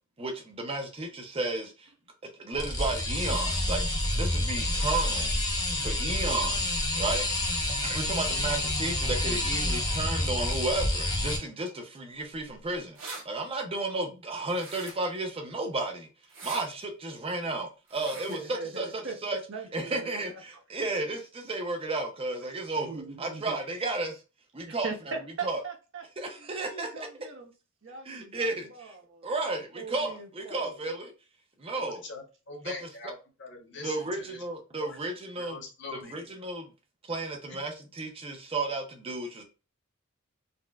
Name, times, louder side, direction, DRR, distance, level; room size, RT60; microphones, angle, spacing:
voice 1, 0.2-1.9 2.2-5.3 5.8-7.5 7.8-13.0 13.2-16.1 16.4-18.9 19.2-19.4 19.7-24.2 24.5-24.9 25.4-25.6 26.2-27.1 28.1-28.9 29.2-31.1 31.6-32.0 32.6-32.9 33.8-35.6 35.9-36.7 37.1-39.4, right 2 dB, 30° right, 0.5 m, -33 dB
sound 1, 2.5-11.4, left 1 dB, 20° left, 0.7 m, -28 dB
sound 2, 12.8-13.2 14.5-15.2 16.2-16.7 17.9-18.4, right 3 dB, 80° right, 1.5 m, -42 dB
voice 2, 18.3-19.2 19.5-20.4 20.7-20.9 22.8-23.6 24.7-26.0 26.4-27.5 27.8-29.3 29.7-31.0, right 4 dB, 65° right, 0.8 m, -40 dB
voice 3, 31.7-34.4 34.8-35.0 35.3-36.1, left 3 dB, 60° left, 0.9 m, -42 dB
4.1 x 2.1 x 2.3 m
head